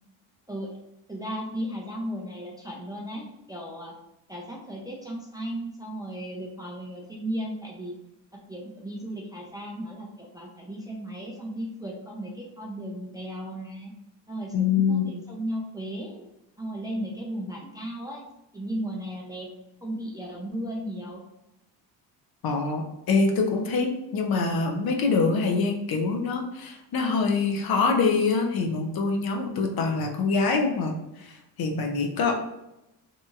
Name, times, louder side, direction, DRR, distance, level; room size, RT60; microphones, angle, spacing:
voice 1, 1.1-3.9 4.3-8.0 8.5-13.9 14.3-16.2 16.6-18.2 18.5-19.5 19.8-21.2, right 1 dB, 10° right, -3 dB, 0.4 m, -35 dB
voice 2, 14.5-15.1 22.4-32.3, left 4 dB, 50° left, 2 dB, 0.6 m, -25 dB
2.8 x 2.8 x 2.3 m, 0.90 s
cardioid pair, 85°, 46 cm